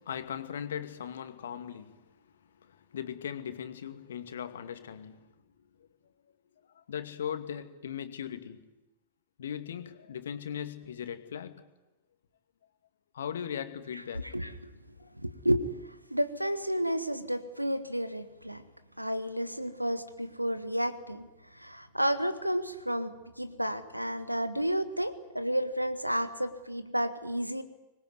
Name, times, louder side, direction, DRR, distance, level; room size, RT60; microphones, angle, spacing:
voice 1, 0.0-2.1 2.4-5.9 6.7-8.6 9.4-11.6 13.1-14.3 15.0-15.1, left 8 dB, 65° left, 2.2 m, -39 dB
voice 2, 15.2-15.7 16.1-18.6 19.0-21.3 21.5-27.6, equal, 90° right, 1.8 m, -31 dB
25.0 x 21.0 x 9.6 m
figure-of-eight pair, 90°, 0 cm